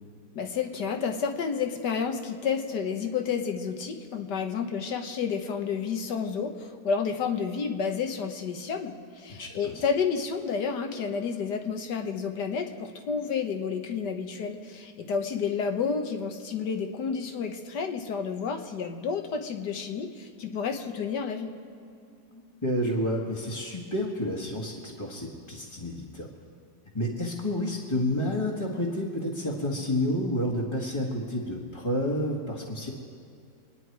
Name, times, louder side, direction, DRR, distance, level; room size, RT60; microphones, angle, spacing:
voice 1, 0.4-21.5, left 6 dB, 70° left, 5 dB, 1.7 m, -30 dB
voice 2, 9.3-9.7 22.3-26.3 26.9-32.9, left 1 dB, 15° left, -4 dB, 1.5 m, -30 dB
26.0 x 10.0 x 4.7 m, 2.6 s
omnidirectional pair, 1.9 m